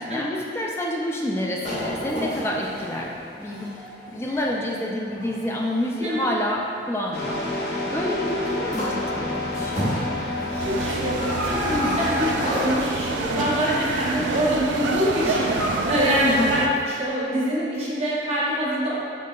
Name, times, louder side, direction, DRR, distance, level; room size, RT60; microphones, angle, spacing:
voice 1, 0.0-3.7 4.1-7.4 7.9-9.9 11.8-12.1 13.7-13.9 14.2-14.4 15.2-15.8 16.2-16.6, left 1 dB, 15° left, -2 dB, 0.3 m, -28 dB
sound 1, 1.6-6.4 7.1-7.3 8.4-8.5 8.7-9.1 9.4-13.3 13.6-14.0 14.3-16.5 16.8-16.9, equal, 40° left, 1.3 m, -31 dB
sound 2, 7.1-13.8, left 2 dB, 60° left, 0.6 m, -30 dB
voice 2, 10.5-19.0, equal, 35° right, -7 dB, 0.7 m, -25 dB
sound 3, 10.6-16.7, right 4 dB, 80° right, 0.3 m, -28 dB
5.1 x 3.2 x 2.3 m, 2.5 s
head